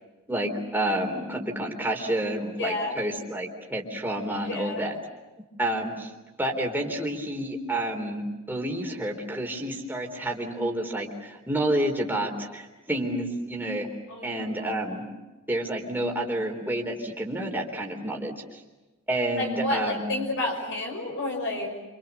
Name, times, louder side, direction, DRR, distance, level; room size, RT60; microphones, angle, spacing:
voice 1, 0.3-5.0 5.6-6.1 6.4-13.9 14.2-15.1 15.5-18.6 19.1-20.1, right 1 dB, 10° right, 1 dB, 3.7 m, -29 dB
voice 2, 2.6-3.0 4.4-4.9 14.1-14.8 19.4-21.7, left 2 dB, 60° left, 1 dB, 5.9 m, -31 dB
27.5 x 27.0 x 7.1 m, 1.1 s
head